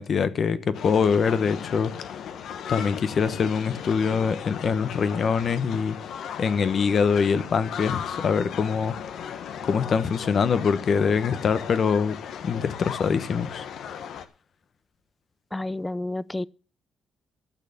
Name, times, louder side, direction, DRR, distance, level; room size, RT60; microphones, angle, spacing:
voice 1, 0.0-1.9 2.7-5.9 6.4-8.9 9.6-12.2 12.4-13.6, left 6 dB, 50° left, 1.1 m, -24 dB
sound 1, 0.7-14.2, left 8 dB, 70° left, 1.2 m, -36 dB
voice 2, 15.5-16.5, left 2 dB, 10° left, 0.5 m, -30 dB
12.0 x 6.7 x 7.0 m
cardioid pair, 90°, 0 cm